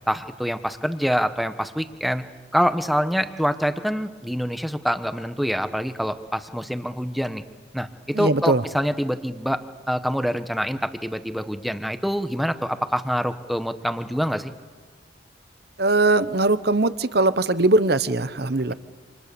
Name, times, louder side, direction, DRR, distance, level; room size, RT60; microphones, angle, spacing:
voice 1, 0.1-2.2 2.5-7.4 7.7-9.6 9.9-14.5, equal, ahead, 9 dB, 1.1 m, -25 dB
voice 2, 8.1-8.6 15.8-18.7, right 2 dB, 55° right, 13 dB, 1.1 m, -20 dB
29.0 x 28.0 x 7.0 m, 1.4 s
head